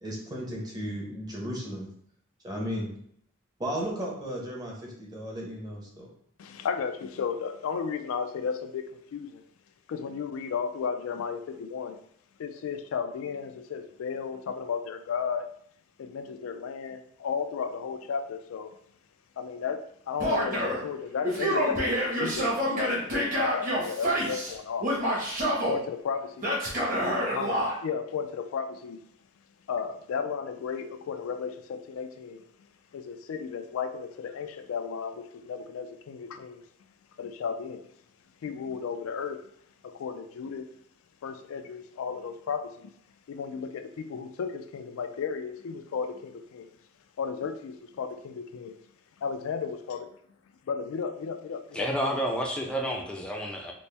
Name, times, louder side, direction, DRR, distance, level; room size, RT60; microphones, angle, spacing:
voice 1, 0.0-1.9 2.4-2.9 3.6-6.1, equal, 20° right, 0.8 m, -35 dB
voice 2, 6.4-9.4 9.9-12.0 12.4-15.5 16.0-18.8 19.4-24.9 25.7-26.5 27.3-27.5 27.8-29.0 29.7-32.4 32.9-36.6 37.2-37.9 38.4-39.5 39.8-40.7 41.2-42.9 43.3-46.8 47.2-48.8 49.2-50.1 50.7-51.9, left 6 dB, 85° left, 0.3 m, -34 dB
Male speech man speaking / Yell, 20.2-20.8 21.2-24.5 24.8-25.8 26.4-27.7, equal, 40° right, 1.3 m, -27 dB
voice 3, 51.8-53.7, equal, 5° left, 0.5 m, -30 dB
4.2 x 2.1 x 3.3 m
head